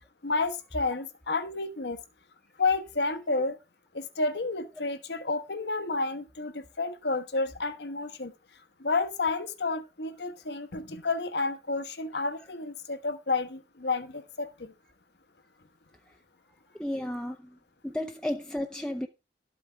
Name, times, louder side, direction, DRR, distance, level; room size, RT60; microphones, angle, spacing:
voice 1, 0.2-2.0 2.6-3.6 3.9-8.3 8.8-14.7, left 3 dB, 75° left, 1.3 m, -30 dB
voice 2, 16.8-17.5 17.8-19.1, left 1 dB, 5° left, 0.6 m, -33 dB
12.5 x 8.4 x 3.4 m
head